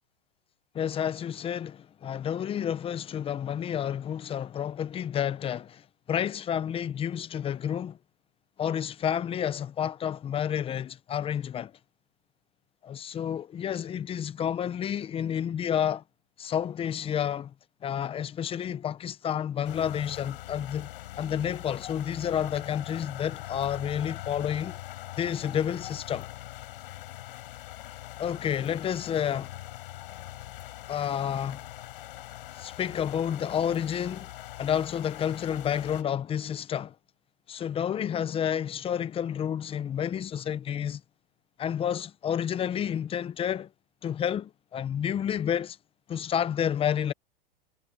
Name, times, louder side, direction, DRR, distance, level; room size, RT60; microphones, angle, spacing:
voice 1, 0.7-5.8 6.1-8.0 8.6-11.7 12.8-16.0 16.4-17.5 17.8-20.9 21.2-24.8 25.2-26.3 28.2-29.5 30.9-31.6 32.6-34.3 34.6-36.9 37.5-41.0 41.6-43.7 44.0-45.8 46.1-47.1, left 9 dB, 20° left, 0.9 m, -30 dB
sound 1, 19.6-36.0, left 15 dB, 65° left, 7.6 m, -42 dB
hypercardioid pair, 130°, 30 cm